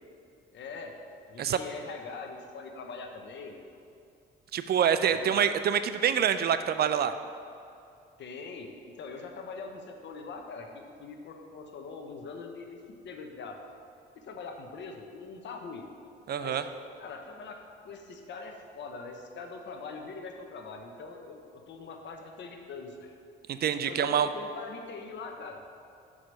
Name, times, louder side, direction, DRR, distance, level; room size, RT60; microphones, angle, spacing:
voice 1, 0.5-0.9 1.3-3.5 5.1-5.4 8.2-8.7 9.0-13.6 14.2-15.8 16.4-16.6 17.0-23.1 23.9-25.6, left 4 dB, 65° left, 3 dB, 0.9 m, -42 dB
voice 2, 4.5-7.1 16.3-16.6 23.5-24.3, right 8 dB, 55° right, 11 dB, 0.4 m, -26 dB
5.6 x 5.0 x 6.2 m, 2.5 s
cardioid pair, 90°, 20 cm